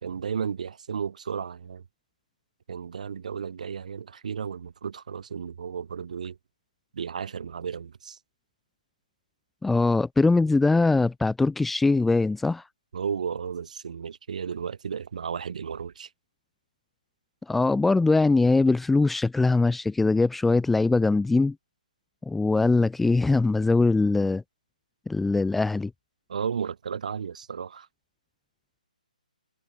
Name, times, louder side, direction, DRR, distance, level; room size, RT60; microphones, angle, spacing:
voice 1, 0.0-1.8 2.7-6.4 6.9-8.2 12.9-16.1 26.3-27.9, right 7 dB, 60° right, 4.0 m, -33 dB
voice 2, 9.6-12.7 17.5-21.6 22.3-24.4 25.1-25.9, left 3 dB, 5° left, 0.5 m, -22 dB
hypercardioid pair, 160°, 5 cm